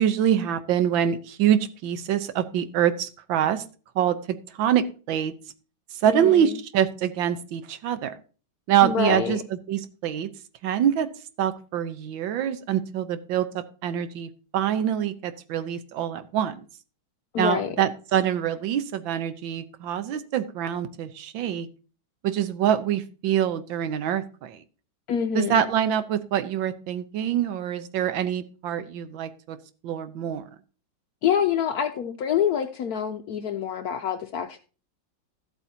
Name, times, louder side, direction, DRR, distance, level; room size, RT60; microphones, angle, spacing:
voice 1, 0.0-3.6 3.9-5.3 6.0-8.2 8.7-10.3 10.6-11.1 11.4-16.6 17.4-21.7 22.2-24.6 25.3-29.6 29.8-30.4, right 10 dB, 75° right, 12 dB, 1.5 m, -25 dB
voice 2, 6.1-6.6 8.8-9.4 17.3-17.7 25.1-25.6 31.2-34.6, left 8 dB, 70° left, 7 dB, 0.9 m, -26 dB
13.5 x 8.0 x 2.7 m, 0.36 s
omnidirectional pair, 2.2 m